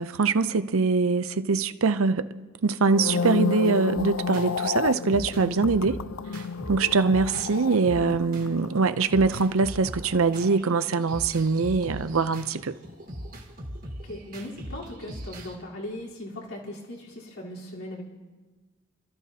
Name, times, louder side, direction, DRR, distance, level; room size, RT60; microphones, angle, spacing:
voice 1, 0.0-6.0 6.7-12.8, right 4 dB, 75° right, 0.6 m, -23 dB
sound 1, 2.8-11.2 11.5-11.8, left 5 dB, 70° left, 0.4 m, -32 dB
sound 2, 4.0-4.5 5.1-7.5 7.8-15.6, equal, 40° right, 1.7 m, -40 dB
voice 2, 14.0-18.0, left 1 dB, 85° left, 3.7 m, -38 dB
29.0 x 13.5 x 2.8 m
head